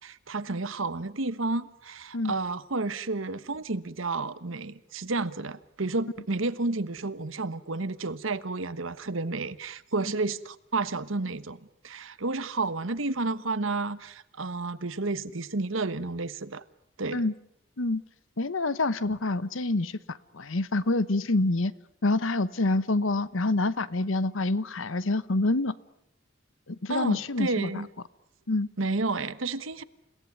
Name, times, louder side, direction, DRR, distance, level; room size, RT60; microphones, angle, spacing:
voice 1, 0.0-11.6 11.8-16.6 17.0-17.2 26.9-27.9 28.8-29.8, right 3 dB, 80° right, 13 dB, 1.3 m, -31 dB
voice 2, 18.4-21.7 22.0-25.7 26.7-27.7 28.5-28.7, left 2 dB, 80° left, 17 dB, 1.0 m, -27 dB
30.0 x 17.5 x 9.5 m, 0.78 s
head